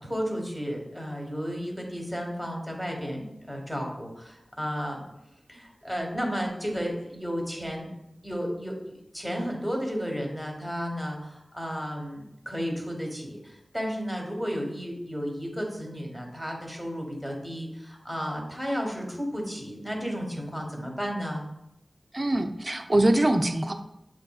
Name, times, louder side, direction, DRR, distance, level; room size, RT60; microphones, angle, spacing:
voice 1, 0.0-5.0 5.5-7.9 8.2-21.4, equal, 5° left, 1 dB, 1.2 m, -33 dB
voice 2, 22.1-23.7, right 1 dB, 40° right, 6 dB, 0.4 m, -23 dB
7.4 x 2.5 x 2.3 m, 0.85 s
wide cardioid pair, 50°, 0 cm